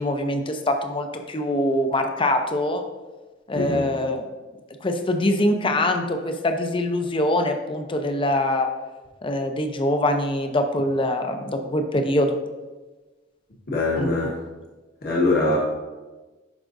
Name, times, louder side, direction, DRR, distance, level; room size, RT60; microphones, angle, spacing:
voice 1, 0.0-2.8 3.5-4.2 4.8-8.7 9.2-12.4 14.0-14.3, left 1 dB, 25° left, 5 dB, 0.6 m, -23 dB
voice 2, 3.5-3.8 13.7-14.3 15.0-15.6, left 2 dB, 55° left, -5 dB, 1.3 m, -22 dB
11.0 x 4.9 x 2.6 m, 1.2 s
head